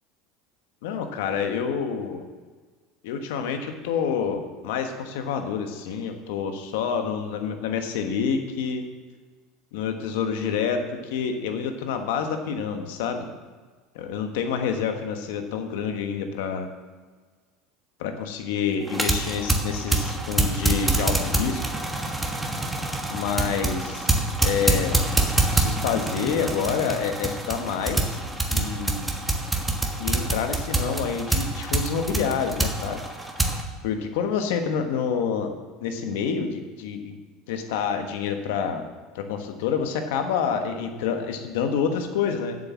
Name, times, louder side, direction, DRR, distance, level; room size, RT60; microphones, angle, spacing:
voice 1, 0.8-2.3 3.0-8.8 9.7-13.3 13.9-16.7 18.0-21.6 23.1-25.1 25.4-28.2 28.5-29.1 30.0-33.0 33.8-35.5 35.8-37.2 37.5-38.9 39.1-42.6, left 6 dB, 80° left, 6 dB, 1.3 m, -28 dB
sound 1, 18.9-33.6, right 2 dB, 5° right, 1.5 m, -26 dB
7.7 x 6.6 x 7.3 m, 1.4 s
supercardioid pair, 105°, 0 cm